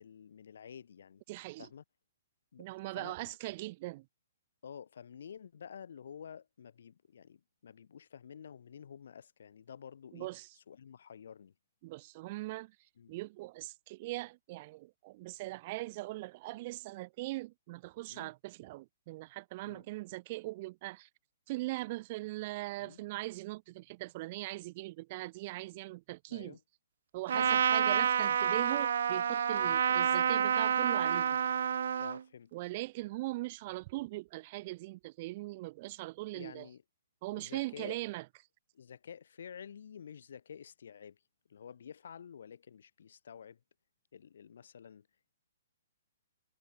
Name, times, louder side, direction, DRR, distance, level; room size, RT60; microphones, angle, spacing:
voice 1, 0.0-1.2 1.6-1.8 2.5-2.7 2.9-3.3 4.6-10.3 10.5-11.5 13.0-13.1 18.1-18.3 19.6-19.9 22.8-23.0 26.3-26.6 27.3-27.6 29.6-29.8 32.0-32.5 36.3-36.8 37.3-38.0 38.7-41.2 41.5-43.6 44.1-45.1, left 7 dB, 65° left, 4.4 m, -50 dB
voice 2, 1.3-1.7 2.6-4.0 10.1-10.5 11.8-12.7 13.1-21.1 21.5-26.6 27.1-31.4 32.5-36.7 37.2-38.2, right 20 dB, 30° right, 1.1 m, -40 dB
Trumpet, 27.3-32.2, right 8 dB, 65° right, 0.3 m, -29 dB
hypercardioid pair, 170°, 0 cm